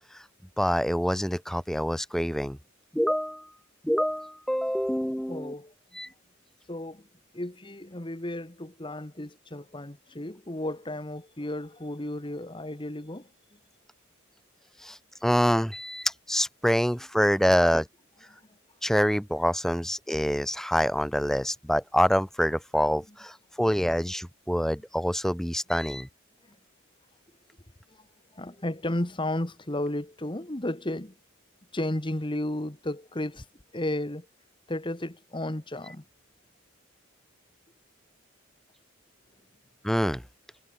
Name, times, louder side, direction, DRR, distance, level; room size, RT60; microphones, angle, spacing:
voice 1, 0.6-2.6 2.9-3.5 3.8-5.5 5.9-6.1 14.8-17.9 18.8-26.1 35.9-36.0 39.8-40.2, equal, ahead, 1.8 m, -26 dB
voice 2, 5.3-5.7 6.7-7.0 7.3-13.3 27.9-28.0 28.3-31.1 31.7-33.5 33.7-34.3 34.7-36.0, left 1 dB, 25° left, 1.5 m, -33 dB
head